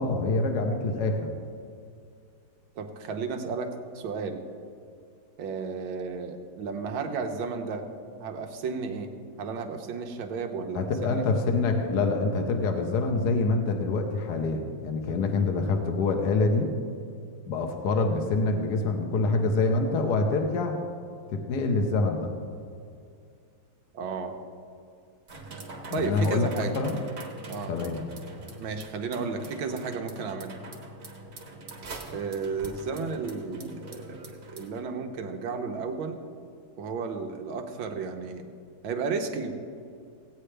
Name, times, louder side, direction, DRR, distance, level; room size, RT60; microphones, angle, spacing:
voice 1, 0.0-1.3 10.7-16.7 17.5-20.8 21.3-22.3 25.9-27.0 27.7-28.0, left 3 dB, 60° left, 3 dB, 1.2 m, -26 dB
voice 2, 2.8-3.7 3.9-4.4 5.4-7.9 8.2-11.2 23.9-24.4 25.9-26.8 27.5-27.8 28.6-30.6 32.1-36.2 36.8-38.4 38.8-39.5, right 5 dB, 75° right, 5 dB, 1.6 m, -33 dB
sound 1, 25.3-34.8, right 2 dB, 40° right, 1.2 m, -43 dB
16.5 x 8.8 x 3.3 m, 2.4 s
omnidirectional pair, 2.3 m